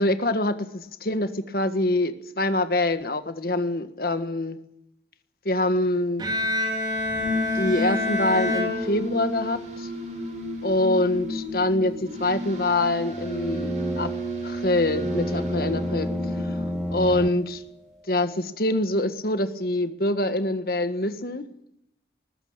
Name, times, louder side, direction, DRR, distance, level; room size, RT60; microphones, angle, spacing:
voice 1, 0.0-4.6 5.4-6.2 7.5-9.9 10.6-14.1 14.4-16.1 16.3-16.5 16.9-17.6 18.1-21.5, left 1 dB, 55° left, 10 dB, 1.6 m, -25 dB
Bowed string instrument, 6.2-9.5, left 2 dB, 25° right, 4.4 m, -27 dB
sound 1, 6.9-17.4, equal, 40° right, 5.8 m, -33 dB
sound 2, 12.7-17.3, equal, ahead, 0.9 m, -31 dB
20.0 x 14.5 x 9.0 m, 0.78 s
head